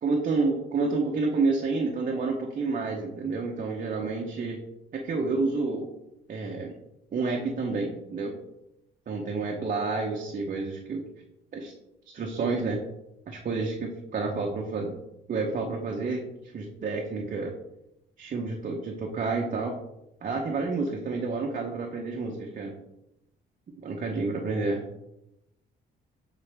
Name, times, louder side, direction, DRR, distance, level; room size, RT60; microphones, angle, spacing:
voice 1, 0.0-4.6 4.9-5.9 6.3-6.7 7.1-8.3 9.1-11.0 11.5-11.7 12.1-12.8 13.3-14.9 15.3-17.5 18.2-19.8 20.2-22.7 23.8-24.8, right 3 dB, 45° right, 0 dB, 0.8 m, -29 dB
6.7 x 4.1 x 3.4 m, 0.88 s
cardioid pair, 90°, 20 cm